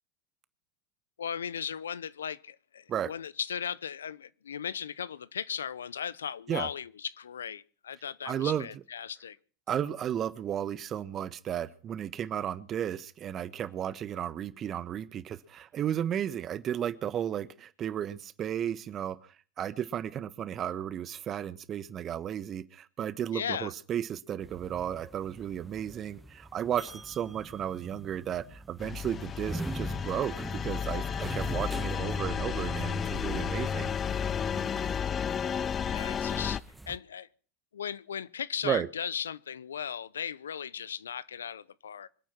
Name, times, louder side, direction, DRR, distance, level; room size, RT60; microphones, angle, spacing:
voice 1, 1.2-9.4 23.3-23.7 35.9-37.3 37.7-42.1, left 8 dB, 85° left, 0.8 m, -37 dB
voice 2, 8.2-8.7 9.7-33.9 38.6-38.9, right 10 dB, 40° right, 1.4 m, -34 dB
sound 1, 24.4-37.0, right 2 dB, 10° right, 1.6 m, -43 dB
sound 2, 28.8-36.6, left 8 dB, 30° left, 0.7 m, -32 dB
26.0 x 9.1 x 6.1 m
hypercardioid pair, 85°, 0 cm